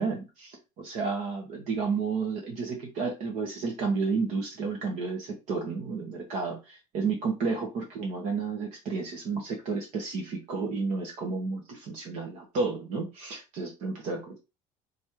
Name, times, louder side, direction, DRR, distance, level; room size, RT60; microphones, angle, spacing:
voice 1, 0.0-14.4, right 4 dB, 55° right, 1 dB, 1.3 m, -31 dB
4.2 x 3.6 x 3.2 m, 0.26 s
cardioid pair, 165°, 14 cm